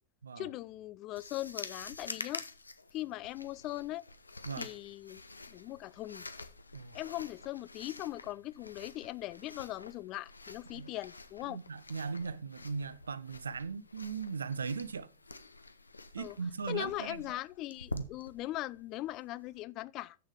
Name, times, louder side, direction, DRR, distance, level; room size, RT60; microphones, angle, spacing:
voice 1, 0.4-2.4 2.9-4.0 4.6-5.2 5.5-6.2 6.9-11.6 16.2-16.4 16.7-20.2, left 16 dB, 40° left, 0.4 m, -40 dB
sound 1, 1.2-19.6, left 3 dB, 80° left, 0.8 m, -48 dB
voice 2, 11.5-15.1 16.1-17.2 17.9-18.1, right 5 dB, 75° right, 0.6 m, -38 dB
8.0 x 7.0 x 4.9 m
figure-of-eight pair, 90°, 0 cm